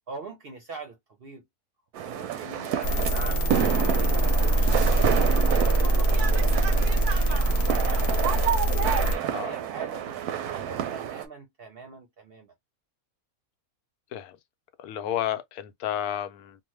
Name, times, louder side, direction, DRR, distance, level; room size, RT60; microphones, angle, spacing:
voice 1, 0.1-1.4 2.0-8.2 8.7-12.5, right 4 dB, 55° right, 0.6 m, -43 dB
sound 1, 2.0-11.3, right 9 dB, 85° right, 1.1 m, -29 dB
sound 2, 2.8-9.2, right 1 dB, 50° left, 0.7 m, -23 dB
voice 2, 14.8-16.6, left 10 dB, 90° left, 1.1 m, -31 dB
2.9 x 2.1 x 3.0 m
omnidirectional pair, 1.6 m